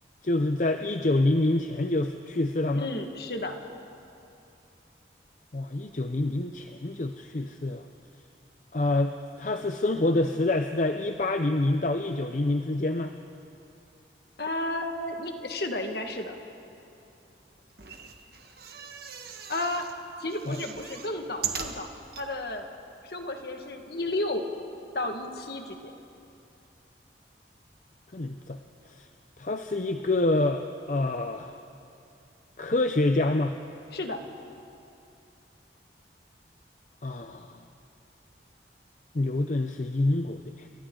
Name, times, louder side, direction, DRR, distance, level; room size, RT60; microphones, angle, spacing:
voice 1, 0.2-2.9 5.5-7.8 8.7-13.1 20.5-20.6 28.1-28.6 28.9-29.1 29.4-31.6 32.6-33.6 37.0-37.6 39.1-40.7, left 2 dB, 45° left, 6 dB, 0.6 m, -27 dB
voice 2, 2.7-3.6 14.4-16.4 19.5-19.9 20.2-21.9 22.1-22.7 23.0-24.4 24.9-25.9 33.9-34.2, left 2 dB, 60° left, 4 dB, 1.7 m, -32 dB
sound 1, 17.7-20.0 20.3-22.3 22.8-22.9 23.1-23.2, right 7 dB, 60° right, 1.5 m, -39 dB
29.5 x 23.5 x 3.9 m, 2.7 s
head